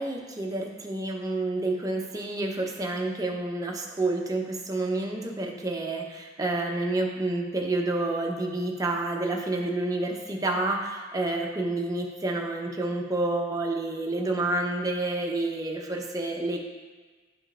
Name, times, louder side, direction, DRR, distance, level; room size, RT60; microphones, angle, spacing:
voice 1, 0.0-16.6, right 2 dB, 20° right, 0 dB, 0.7 m, -29 dB
11.0 x 5.1 x 2.5 m, 1.4 s
head